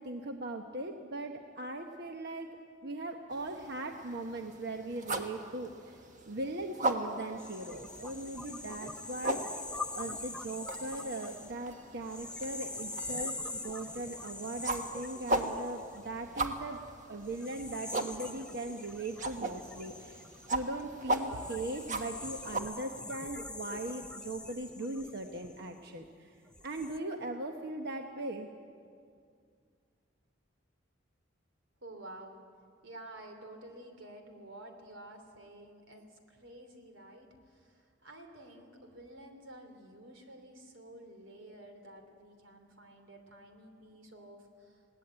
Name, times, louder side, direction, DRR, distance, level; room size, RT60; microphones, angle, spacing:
voice 1, 0.0-2.6 2.8-6.0 6.3-9.6 9.9-16.8 17.1-20.2 20.5-26.3 26.6-28.5, right 2 dB, 60° right, 4 dB, 1.0 m, -39 dB
sound 1, 3.3-22.6, right 2 dB, 40° right, 1.4 m, -39 dB
sound 2, 7.4-16.6 17.2-26.0 26.5-27.0, left 2 dB, 5° left, 0.5 m, -44 dB
voice 2, 31.8-32.4 32.8-36.0 36.3-44.8, right 1 dB, 90° right, 5 dB, 3.0 m, -51 dB
21.0 x 17.5 x 8.8 m, 2.3 s
head